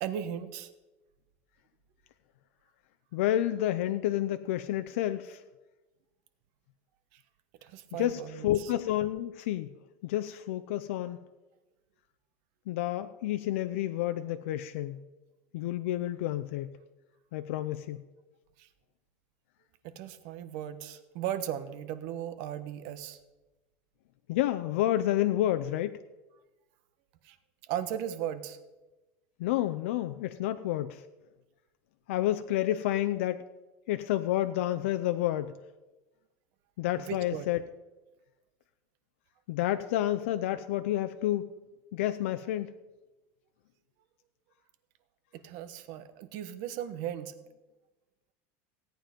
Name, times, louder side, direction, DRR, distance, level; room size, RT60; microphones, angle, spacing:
voice 1, 0.0-0.7 7.1-7.2 7.6-8.7 18.6-18.7 19.8-23.2 27.2-27.4 27.6-28.6 37.1-37.5 45.3-47.3, right 10 dB, 60° right, 10 dB, 1.2 m, -37 dB
voice 2, 3.1-5.4 8.0-9.7 10.0-11.2 12.7-15.0 15.5-16.7 17.3-18.0 24.3-26.0 29.4-31.0 32.1-33.4 33.9-35.5 36.8-37.6 39.5-41.5 41.9-42.7, left 13 dB, 85° left, 10 dB, 0.6 m, -30 dB
16.5 x 9.1 x 5.2 m, 1.1 s
supercardioid pair, 155°, 7 cm